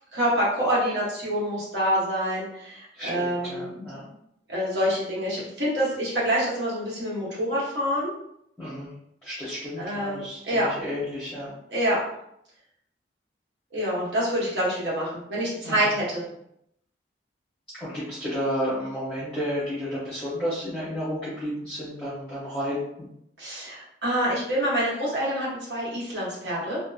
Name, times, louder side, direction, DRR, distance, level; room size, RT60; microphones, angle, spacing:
voice 1, 0.0-3.7 4.5-8.1 9.8-10.7 11.7-12.0 13.7-16.3 23.4-26.8, equal, 75° right, -6 dB, 1.0 m, -26 dB
voice 2, 2.9-4.1 8.6-8.9 9.2-11.6 15.6-15.9 17.8-22.8, equal, 5° left, -11 dB, 0.7 m, -32 dB
2.7 x 2.0 x 2.3 m, 0.75 s
head